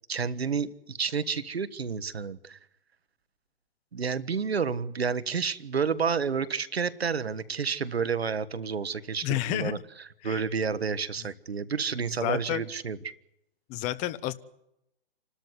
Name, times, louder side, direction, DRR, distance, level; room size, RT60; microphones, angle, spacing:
voice 1, 0.1-2.6 3.9-13.0, right 6 dB, 85° right, 15 dB, 1.5 m, -30 dB
voice 2, 9.2-9.8 10.2-10.4 12.2-12.6 13.7-14.3, left 15 dB, 25° left, 16 dB, 0.9 m, -30 dB
28.0 x 13.0 x 9.5 m, 0.83 s
hypercardioid pair, 130°, 30 cm